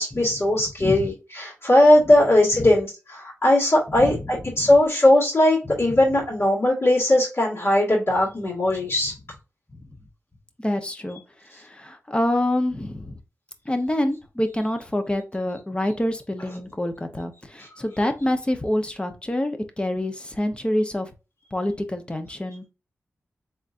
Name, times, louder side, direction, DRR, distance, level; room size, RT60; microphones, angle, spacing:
voice 1, 0.0-9.1 17.6-17.7, left 1 dB, 50° left, -8 dB, 2.3 m, -19 dB
voice 2, 10.6-11.2 11.6-13.2 13.7-21.1 21.5-22.7, left 1 dB, 20° left, 7 dB, 0.9 m, -26 dB
4.0 x 3.6 x 2.6 m, 0.28 s
cardioid pair, 60°, 5 cm